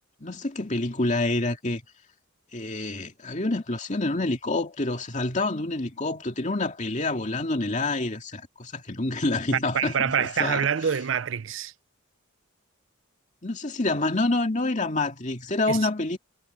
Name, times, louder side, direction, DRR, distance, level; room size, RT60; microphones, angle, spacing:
voice 1, 0.2-1.8 2.5-10.7 13.4-16.2, left 2 dB, 35° left, 2.4 m, -27 dB
voice 2, 9.7-11.7 15.7-15.8, right 7 dB, 65° right, 0.5 m, -26 dB
head